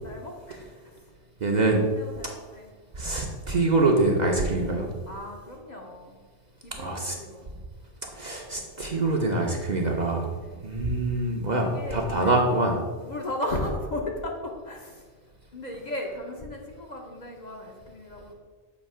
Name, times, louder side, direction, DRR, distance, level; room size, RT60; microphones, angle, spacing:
voice 1, 0.0-1.1 1.6-2.7 5.1-6.2 6.6-7.5 10.4-10.6 11.6-12.4 13.0-15.1 15.5-18.3, left 1 dB, 45° left, 0 dB, 0.7 m, -36 dB
voice 2, 1.4-1.8 2.9-4.9 6.8-7.2 8.1-10.3 10.6-12.7, right 2 dB, 45° right, 0 dB, 0.7 m, -24 dB
7.2 x 2.8 x 5.5 m, 1.4 s
omnidirectional pair, 1.2 m